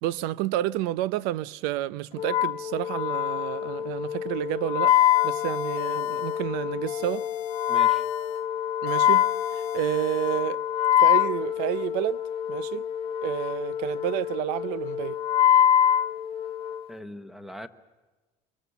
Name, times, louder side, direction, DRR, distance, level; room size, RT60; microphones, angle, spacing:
voice 1, 0.0-4.9 5.2-7.3 8.8-9.3 9.5-10.6 11.0-12.2 12.5-12.8 13.2-15.2, right 14 dB, 85° right, 0.7 m, -30 dB
Wind instrument woodwind instrument, 2.2-16.9, left 11 dB, 35° left, 1.2 m, -25 dB
sound 1, 4.9-6.5 6.9-8.5 8.9-10.5, left 20 dB, 75° left, 0.8 m, -42 dB
voice 2, 7.7-8.0 16.9-17.7, equal, ahead, 1.1 m, -40 dB
25.5 x 23.5 x 7.0 m
cardioid pair, 155°, 16 cm